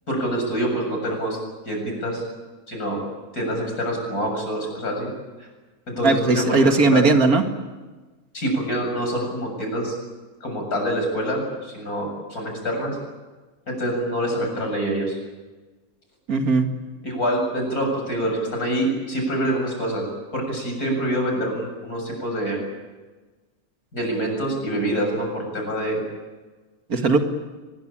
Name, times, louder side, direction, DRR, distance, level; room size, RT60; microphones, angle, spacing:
voice 1, 0.1-1.4 1.7-2.2 2.7-3.0 3.3-5.1 5.9-7.0 8.3-9.9 10.4-13.0 13.7-15.2 17.0-20.0 20.3-22.6 23.9-26.0, right 1 dB, 70° left, 2 dB, 8.0 m, -26 dB
voice 2, 6.0-7.4 16.3-16.7 26.9-27.2, right 3 dB, 70° right, 6 dB, 2.4 m, -18 dB
24.0 x 21.5 x 8.9 m, 1.3 s
omnidirectional pair, 1.6 m